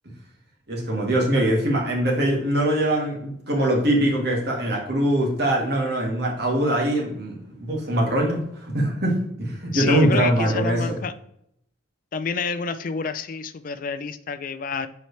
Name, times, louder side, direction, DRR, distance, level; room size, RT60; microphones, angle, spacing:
voice 1, 0.7-11.0, right 1 dB, 55° right, -1 dB, 1.9 m, -22 dB
voice 2, 9.7-11.1 12.1-14.9, left 5 dB, 45° left, 12 dB, 0.4 m, -28 dB
7.0 x 4.6 x 3.2 m, 0.73 s
head